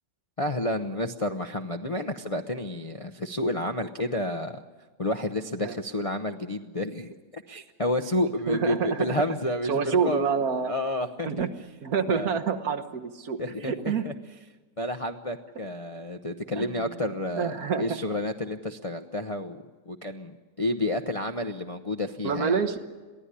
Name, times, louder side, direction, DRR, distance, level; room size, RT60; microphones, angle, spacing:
voice 1, 0.4-4.6 5.0-10.2 10.7-11.3 12.1-12.4 13.4-14.1 14.8-22.6, left 1 dB, 35° left, 3 dB, 0.5 m, -30 dB
voice 2, 8.5-9.4 9.7-10.7 11.3-11.5 11.8-14.1 16.5-17.0 17.4-18.0 22.2-22.8, right 6 dB, 60° right, 9 dB, 1.6 m, -27 dB
22.5 x 15.5 x 9.9 m, 1.4 s
omnidirectional pair, 1.8 m